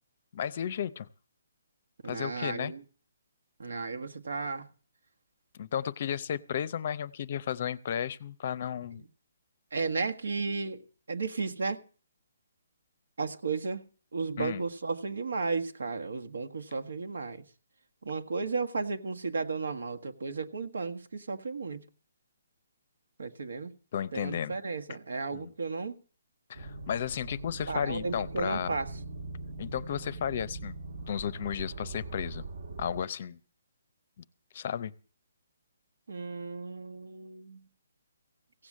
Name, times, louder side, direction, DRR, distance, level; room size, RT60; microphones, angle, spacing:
voice 1, 0.3-1.1 2.1-2.7 5.5-9.0 14.4-14.7 23.9-24.6 25.3-25.5 26.5-28.7 29.6-30.8 31.1-32.4 32.8-33.4 34.5-34.9, left 9 dB, 30° left, 0.6 m, -33 dB
voice 2, 2.0-2.8 3.6-4.7 9.7-11.8 13.2-13.8 14.1-17.5 18.0-21.8 23.2-23.7 24.1-26.0 27.7-28.9 36.1-37.6, right 4 dB, 85° right, 1.6 m, -34 dB
sound 1, 26.5-33.0, right 2 dB, 55° right, 1.4 m, -41 dB
16.5 x 8.1 x 7.4 m
hypercardioid pair, 180°, 0 cm